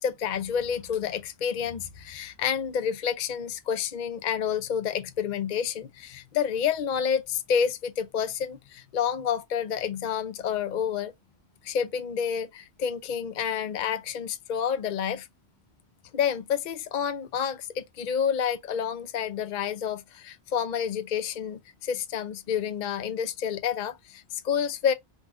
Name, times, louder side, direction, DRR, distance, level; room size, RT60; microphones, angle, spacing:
voice 1, 0.0-11.1 11.6-15.3 16.1-24.9, left 8 dB, 50° left, 0.7 m, -29 dB
4.0 x 2.5 x 4.7 m
omnidirectional pair, 1.1 m